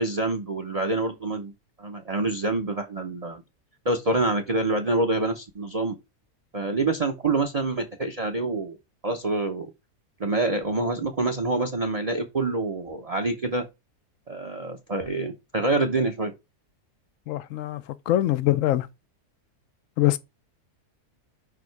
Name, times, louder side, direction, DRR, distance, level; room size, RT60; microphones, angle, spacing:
voice 1, 0.0-1.5 1.8-3.4 3.8-6.0 6.5-8.8 9.0-9.7 10.2-13.7 14.3-16.3, right 2 dB, 30° right, 0.8 m, -26 dB
voice 2, 17.3-18.9 20.0-20.2, left 14 dB, 65° left, 1.0 m, -23 dB
5.3 x 5.0 x 4.7 m
omnidirectional pair, 1.7 m